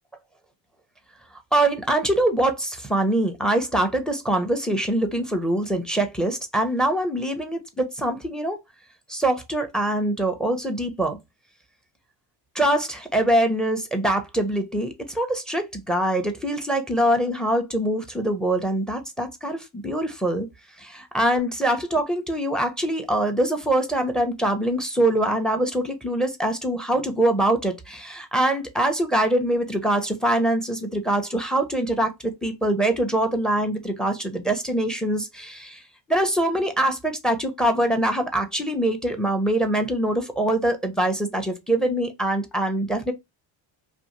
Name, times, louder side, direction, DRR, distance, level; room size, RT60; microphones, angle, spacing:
voice 1, 1.5-8.6 9.1-11.2 12.5-20.5 20.8-35.8 36.1-43.1, right 1 dB, ahead, 0.5 m, -24 dB
2.5 x 2.4 x 2.9 m
cardioid pair, 100°, 46 cm